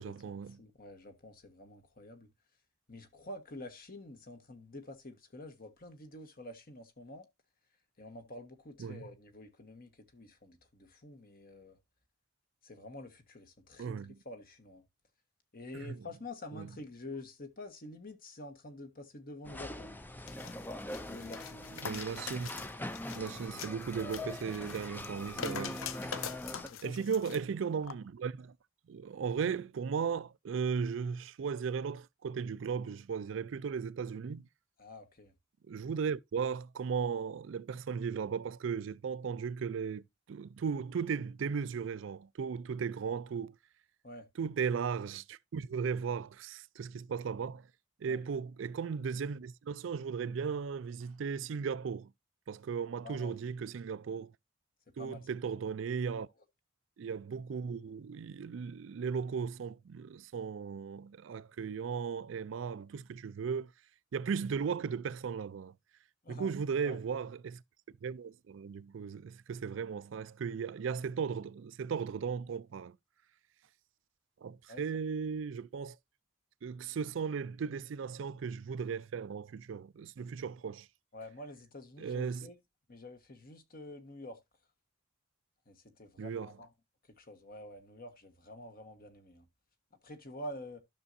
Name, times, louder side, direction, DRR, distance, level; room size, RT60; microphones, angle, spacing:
voice 1, 0.0-0.6 8.8-9.0 13.8-14.1 15.8-16.0 16.5-16.7 21.8-22.5 23.1-25.8 26.8-28.5 28.9-34.5 35.7-43.5 44.4-47.7 48.0-52.1 52.5-54.3 55.0-56.3 57.0-63.7 64.1-65.7 66.3-67.6 68.0-73.0 74.4-76.0 76.6-80.9 82.0-82.5 86.2-86.5, right 6 dB, 65° right, 0.4 m, -36 dB
voice 2, 0.6-2.3 2.9-7.3 8.0-11.8 12.6-14.8 15.5-20.0 21.1-21.7 26.7-27.4 34.8-35.3 44.0-44.3 48.1-48.2 53.0-53.4 55.0-55.3 66.2-66.5 66.8-67.0 74.7-74.8 81.1-82.6 82.9-84.4 85.7-86.7 87.2-89.5 90.0-90.8, left 1 dB, 45° left, 1.3 m, -48 dB
sound 1, 19.5-26.7, left 1 dB, 10° left, 0.5 m, -42 dB
sound 2, 20.3-27.4 27.8-27.9, left 8 dB, 85° left, 0.6 m, -44 dB
12.5 x 6.2 x 2.6 m
head